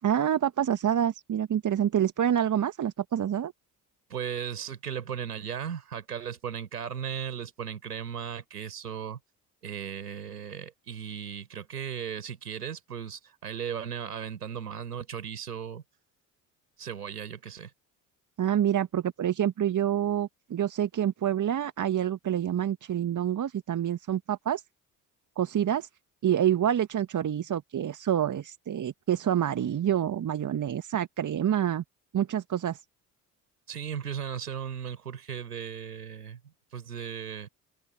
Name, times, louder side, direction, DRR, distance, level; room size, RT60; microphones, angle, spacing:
voice 1, 0.0-3.5 18.4-24.6 25.4-25.9 26.2-31.8 32.1-32.8, right 10 dB, 40° right, 2.2 m, -27 dB
voice 2, 4.1-9.2 9.6-15.8 16.8-17.7 33.7-37.5, right 8 dB, 80° right, 5.8 m, -36 dB
open air
figure-of-eight pair, 50°, 46 cm